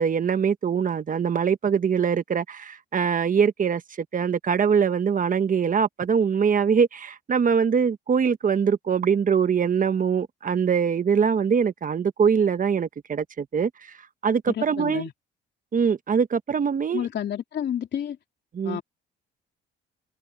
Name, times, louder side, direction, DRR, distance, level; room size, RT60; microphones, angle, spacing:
voice 1, 0.0-3.8 4.1-13.9 14.2-15.0 15.7-17.1 18.5-18.8, right 6 dB, 40° right, 1.2 m, -23 dB
voice 2, 14.5-15.1 16.9-18.2 18.6-18.8, left 9 dB, 60° left, 3.1 m, -30 dB
cardioid pair, 90°, 20 cm